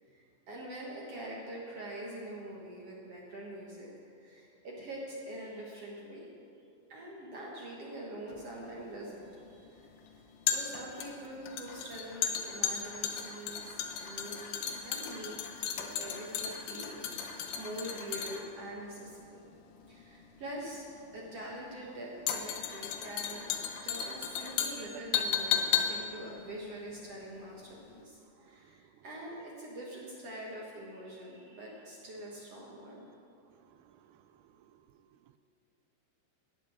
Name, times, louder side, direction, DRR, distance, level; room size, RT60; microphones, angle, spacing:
voice 1, 0.0-3.9 4.2-6.3 6.9-19.4 19.9-20.9 21.1-23.5 23.8-33.1, right 1 dB, 55° right, -3 dB, 1.8 m, -44 dB
sound 1, 8.3-27.6 27.9-28.0, left 8 dB, 75° left, 2.7 m, -35 dB
voice 2, 33.7-34.8, right 15 dB, 80° right, 12 dB, 2.3 m, -54 dB
13.0 x 6.9 x 9.7 m, 2.7 s
omnidirectional pair, 4.5 m